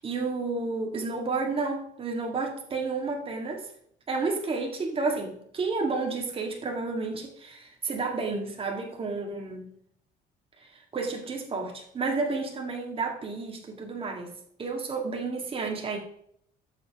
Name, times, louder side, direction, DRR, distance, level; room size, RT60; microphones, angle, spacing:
voice 1, 0.0-3.7 4.1-9.6 10.6-14.3 14.6-16.0, right 3 dB, 35° right, 1 dB, 2.1 m, -31 dB
7.3 x 6.9 x 3.7 m, 0.67 s
cardioid pair, 110°, 17 cm